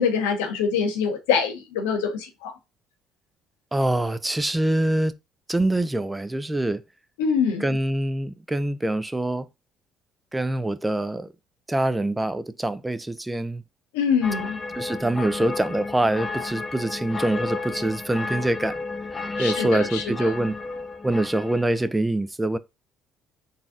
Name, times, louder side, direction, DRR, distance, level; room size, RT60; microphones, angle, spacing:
voice 1, 0.0-2.5 7.2-7.6 13.9-14.6 19.4-20.3, left 6 dB, 90° left, 1.0 m, -24 dB
voice 2, 3.7-5.1 5.5-6.8 7.6-9.5 10.3-11.3 11.7-13.6 14.8-18.7 19.4-20.5 21.0-22.6, right 1 dB, 10° right, 0.5 m, -24 dB
sound 1, 14.2-21.8, left 3 dB, 25° left, 0.7 m, -33 dB
4.0 x 2.3 x 3.7 m
supercardioid pair, 70°, 0 cm